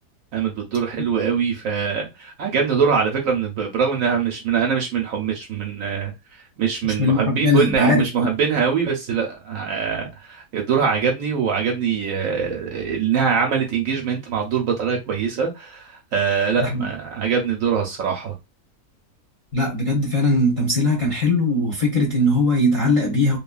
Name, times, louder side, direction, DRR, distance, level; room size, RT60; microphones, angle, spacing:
voice 1, 0.3-18.3, right 6 dB, 65° right, 0.9 m, -23 dB
voice 2, 6.8-8.3 16.6-16.9 19.5-23.4, left 1 dB, 30° left, 0.7 m, -20 dB
2.9 x 2.3 x 2.3 m
omnidirectional pair, 1.7 m